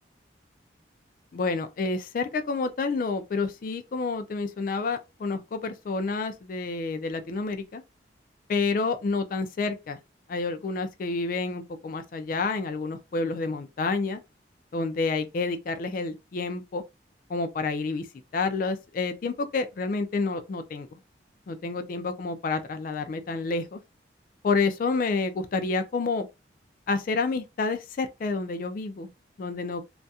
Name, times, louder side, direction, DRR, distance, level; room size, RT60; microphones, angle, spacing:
voice 1, 1.3-7.8 8.5-10.0 10.3-14.2 14.7-16.8 17.3-18.1 18.3-21.0 21.5-23.8 24.4-26.3 26.9-29.1 29.4-29.8, left 3 dB, 50° left, 0.3 m, -29 dB
2.3 x 2.2 x 2.6 m
head